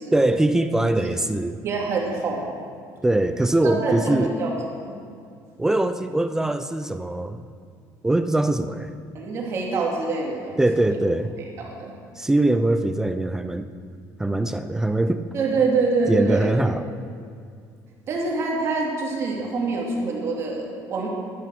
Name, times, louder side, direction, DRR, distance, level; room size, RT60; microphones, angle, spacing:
voice 1, 0.1-1.6 3.0-4.3 5.6-7.4 8.0-8.9 10.6-11.3 12.2-13.7 14.2-15.2 16.1-16.8, right 1 dB, 5° right, 10 dB, 0.4 m, -22 dB
voice 2, 1.6-2.6 3.6-4.5 4.8-5.0 9.1-10.6 11.6-11.9 15.3-16.5 18.1-21.1, right 3 dB, 40° right, -1 dB, 2.4 m, -25 dB
12.5 x 12.0 x 6.2 m, 2.3 s
cardioid pair, 160°, 7 cm